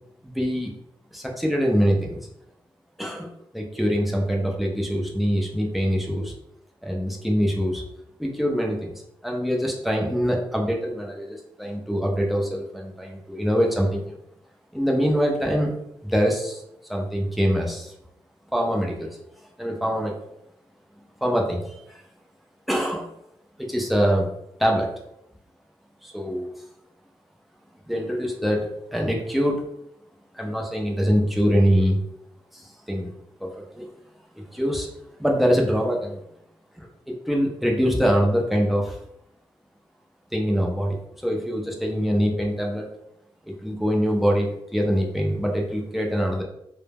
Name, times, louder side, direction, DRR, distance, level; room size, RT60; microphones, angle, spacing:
voice 1, 0.2-0.7 1.1-2.2 3.0-6.3 6.8-7.8 8.2-8.9 9.2-14.2 14.7-15.7 16.0-16.6 16.9-17.9 18.5-19.1 19.6-20.2 21.2-22.0 22.7-23.1 23.6-24.3 24.6-24.9 26.0-26.5 27.9-29.6 30.3-32.0 32.5-33.1 33.4-33.9 34.4-34.9 35.2-36.2 36.8-39.0 40.3-40.9 41.2-42.9 43.5-46.4, equal, ahead, -1 dB, 0.5 m, -24 dB
2.2 x 2.0 x 3.3 m, 0.80 s
wide cardioid pair, 125°, 10 cm